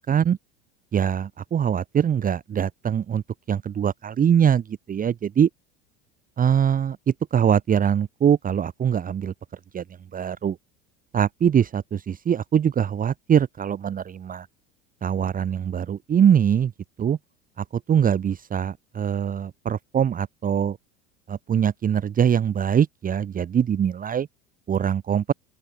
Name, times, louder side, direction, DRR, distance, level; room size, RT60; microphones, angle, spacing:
voice 1, 0.1-0.4 0.9-3.2 3.5-5.5 6.4-9.3 9.7-9.8 10.1-10.6 11.1-14.5 15.0-16.7 17.0-17.2 17.6-20.8 21.3-24.3 24.7-25.3, right 8 dB, 30° right, 1.0 m, -22 dB
open air
hypercardioid pair, 90°, 29 cm